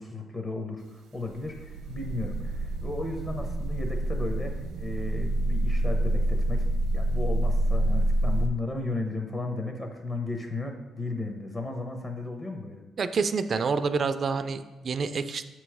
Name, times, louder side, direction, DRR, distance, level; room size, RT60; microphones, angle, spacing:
voice 1, 0.0-6.7 6.9-12.8, left 2 dB, 30° left, 3 dB, 0.8 m, -34 dB
sound 1, 1.1-8.5, right 1 dB, 85° right, 0.7 m, -27 dB
voice 2, 13.0-15.4, right 5 dB, 45° right, 10 dB, 0.3 m, -28 dB
7.2 x 3.0 x 4.8 m, 1.1 s
cardioid pair, 90°, 0 cm